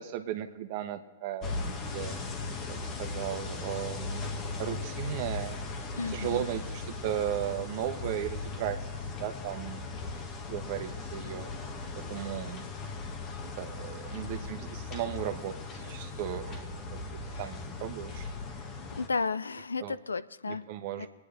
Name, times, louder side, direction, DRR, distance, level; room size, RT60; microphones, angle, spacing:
voice 1, 0.0-2.2 2.7-4.3 4.6-5.6 6.1-9.8 10.5-11.5 11.9-12.7 13.4-16.6 16.9-17.0 17.4-18.6 19.8-20.0 20.5-21.1, right 11 dB, 50° right, 8 dB, 1.3 m, -36 dB
sound 1, 1.4-19.1, left 3 dB, 30° left, 1.6 m, -38 dB
voice 2, 6.0-6.5 19.0-20.6 21.0-21.1, left 4 dB, 85° left, 17 dB, 0.4 m, -33 dB
24.0 x 9.6 x 3.4 m, 1.3 s
hypercardioid pair, 110°, 0 cm